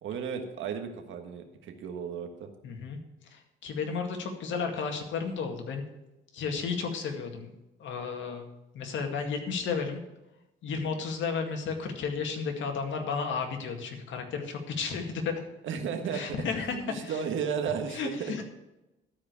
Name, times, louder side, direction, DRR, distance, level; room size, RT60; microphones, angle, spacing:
voice 1, 0.0-2.5 15.6-16.4 16.8-18.3, right 7 dB, 75° right, 5 dB, 1.5 m, -34 dB
voice 2, 2.6-3.0 3.3-5.8 6.3-7.5 7.8-8.5 8.7-10.0 10.6-15.4 16.1-17.2 17.9-18.4, left 5 dB, 75° left, 4 dB, 2.1 m, -33 dB
12.5 x 5.0 x 8.3 m, 0.97 s
cardioid pair, 90°, 20 cm